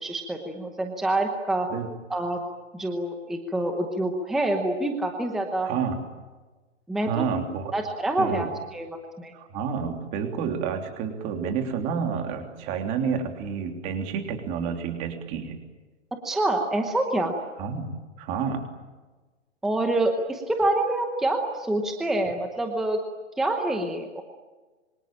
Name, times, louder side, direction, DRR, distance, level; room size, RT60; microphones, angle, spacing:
voice 1, 0.0-1.7 2.1-2.4 2.7-5.7 6.9-7.3 7.7-8.5 8.7-8.9 9.2-9.3 16.2-17.3 19.6-23.0 23.4-24.2, right 1 dB, ahead, 4 dB, 0.9 m, -26 dB
voice 2, 5.6-6.0 7.1-7.7 8.2-8.5 9.3-15.6 17.6-17.9 18.2-18.6, right 6 dB, 20° right, 5 dB, 3.2 m, -29 dB
26.5 x 25.0 x 8.9 m, 1.3 s
hypercardioid pair, 170°, 37 cm